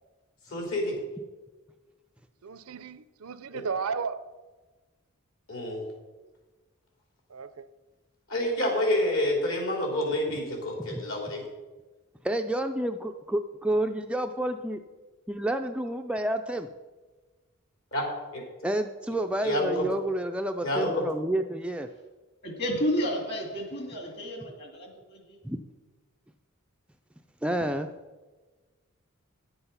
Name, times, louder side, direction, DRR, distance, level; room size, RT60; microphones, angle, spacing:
voice 1, 0.5-1.0 3.5-3.6 5.5-5.8 8.3-11.4 17.9-18.1 18.3-18.4 19.4-19.8 20.6-21.0, left 1 dB, 70° left, 0 dB, 3.2 m, -28 dB
voice 2, 2.4-4.2 7.3-7.7, right 5 dB, 85° right, 13 dB, 0.6 m, -34 dB
voice 3, 12.2-14.8 15.3-16.7 18.6-21.9 25.4-25.6 27.4-27.9, right 1 dB, 5° right, 5 dB, 0.3 m, -29 dB
voice 4, 22.4-25.4, equal, 50° left, 2 dB, 2.4 m, -31 dB
10.5 x 7.9 x 5.6 m, 1.2 s
head